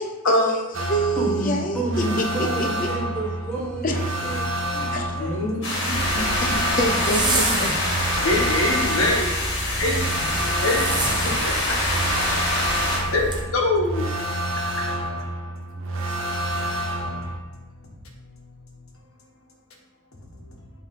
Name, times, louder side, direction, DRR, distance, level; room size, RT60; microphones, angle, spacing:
voice 1, 0.0-1.8 2.8-2.9 3.8-4.1 4.9-5.2 6.4-7.7, equal, 40° left, 4 dB, 0.6 m, -26 dB
sound 1, 0.7-17.4, right 1 dB, 65° right, 0.7 m, -29 dB
voice 2, 1.1-5.5, right 2 dB, 5° left, -6 dB, 1.5 m, -30 dB
voice 3, 5.2-6.3 8.2-9.3 9.8-10.0 10.6-10.9 11.4-11.8 13.1-14.1 16.9-17.0, left 2 dB, 80° left, -1 dB, 1.3 m, -24 dB
sound 2, 5.6-13.0, left 1 dB, 55° left, 1.6 m, -25 dB
Zipper (clothing), 5.9-13.4, right 2 dB, 20° right, 0.8 m, -30 dB
9.2 x 3.3 x 3.8 m, 1.1 s
head